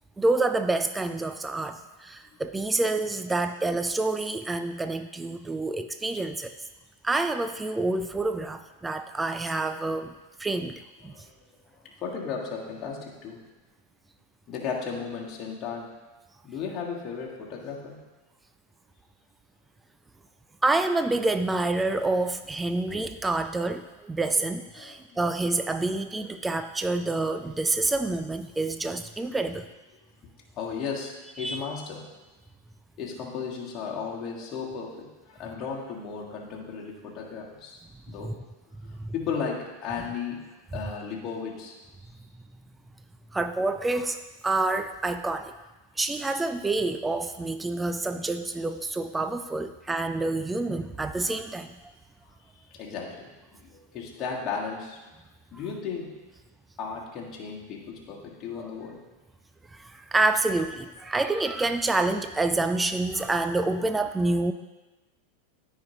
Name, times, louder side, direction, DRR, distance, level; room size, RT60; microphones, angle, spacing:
voice 1, 0.2-6.5 7.0-10.1 10.4-11.1 20.6-29.7 31.4-31.6 38.2-38.3 39.0-39.1 43.3-45.5 46.0-51.8 58.6-58.7 59.7-64.5, right 2 dB, 10° right, 9 dB, 0.3 m, -27 dB
voice 2, 11.8-13.4 14.5-15.9 16.4-18.0 24.7-25.2 30.5-32.1 33.0-37.8 38.1-38.4 38.8-40.4 40.7-41.7 52.7-55.0 55.5-56.2 56.8-59.0, left 6 dB, 30° left, -3 dB, 1.7 m, -35 dB
13.5 x 5.1 x 2.9 m, 1.1 s
figure-of-eight pair, 90°, 0 cm